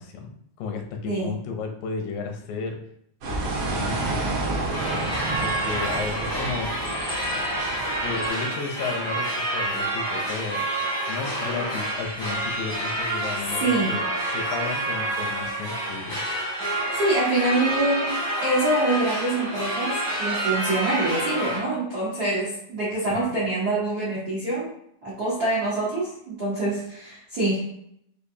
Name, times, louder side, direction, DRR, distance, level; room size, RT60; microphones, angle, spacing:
voice 1, 0.0-2.8 3.3-4.2 5.4-6.7 8.0-14.0 14.3-16.2 23.1-23.3, left 5 dB, 85° left, 3 dB, 2.4 m, -33 dB
sound 1, 3.2-8.3, right 2 dB, 70° right, 1.2 m, -29 dB
sound 2, 4.7-21.6, right 1 dB, 35° left, 0.4 m, -28 dB
voice 2, 13.6-13.9 16.7-18.1 18.4-24.7 25.0-27.8, right 2 dB, 85° right, -8 dB, 0.8 m, -25 dB
6.4 x 2.6 x 2.7 m, 0.72 s
omnidirectional pair, 3.9 m